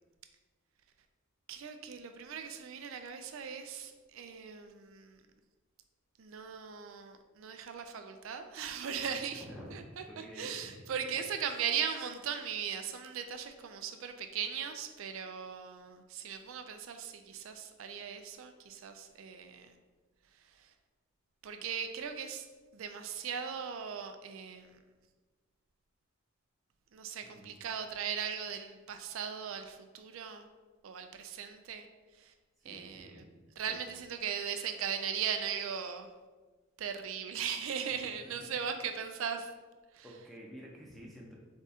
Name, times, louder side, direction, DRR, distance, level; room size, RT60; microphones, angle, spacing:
voice 1, 1.5-5.2 6.2-9.4 9.7-9.8 10.2-19.8 20.5-20.7 21.4-22.5 22.7-24.8 26.9-30.5 30.8-31.9 32.1-32.3 32.6-33.2 33.6-36.1 36.8-39.5 39.9-40.1, right 7 dB, 75° right, 7 dB, 0.4 m, -38 dB
voice 2, 9.3-10.7 27.2-27.6 32.6-33.3 33.7-33.8 40.0-41.3, equal, ahead, -3 dB, 0.7 m, -49 dB
3.6 x 3.5 x 4.1 m, 1.3 s
head